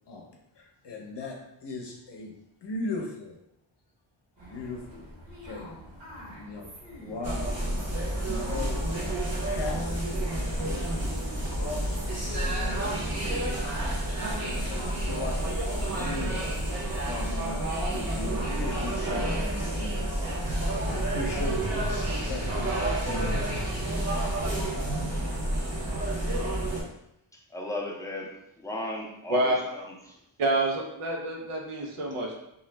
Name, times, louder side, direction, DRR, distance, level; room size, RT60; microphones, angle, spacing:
voice 1, 0.5-2.3 2.6-3.4 4.5-5.0 5.4-5.8 6.1-6.7 7.0-8.0 8.3-9.2 9.4-10.0 10.5-11.1 11.4-12.0 12.4-13.5 14.6-16.6 17.1-20.5 20.8-22.7 23.1-23.8, left 2 dB, 55° left, 0 dB, 0.7 m, -38 dB
sound 1, 4.4-20.9, left 1 dB, 60° right, 1.0 m, -47 dB
sound 2, 7.2-26.8, right 1 dB, 30° right, 0.7 m, -29 dB
voice 2, 27.3-30.2, left 2 dB, 5° left, -2 dB, 0.4 m, -36 dB
voice 3, 30.4-32.4, right 2 dB, 85° right, 0 dB, 0.6 m, -27 dB
2.3 x 2.0 x 3.2 m, 0.82 s
wide cardioid pair, 85°, 50 cm